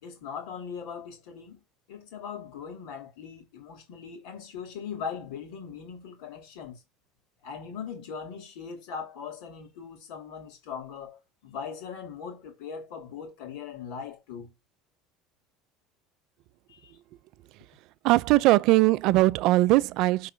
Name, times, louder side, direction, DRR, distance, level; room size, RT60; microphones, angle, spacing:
voice 1, 0.0-1.6 1.9-6.8 7.4-14.5 16.7-16.9, left 6 dB, 75° left, 3.0 m, -40 dB
voice 2, 18.0-20.3, right 19 dB, 60° right, 0.5 m, -20 dB
5.7 x 4.7 x 6.2 m
cardioid pair, 145°, 0 cm